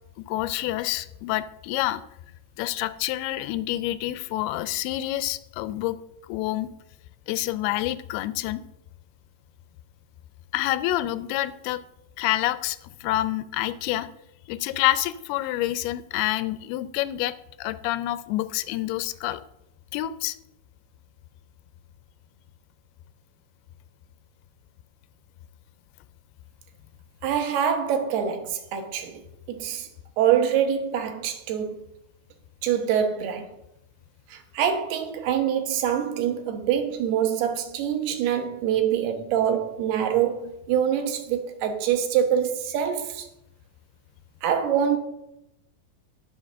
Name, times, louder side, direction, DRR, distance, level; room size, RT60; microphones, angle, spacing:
voice 1, 0.3-2.0 2.6-6.0 6.3-6.7 7.3-8.6 10.5-11.8 12.2-14.1 14.5-19.4 19.9-20.4, left 15 dB, 90° left, 2.6 m, -27 dB
voice 2, 27.2-29.2 29.5-29.9 30.2-31.8 32.6-33.5 34.3-43.3 44.4-45.0, right 9 dB, 85° right, 3.2 m, -25 dB
10.5 x 7.2 x 6.3 m
omnidirectional pair, 4.5 m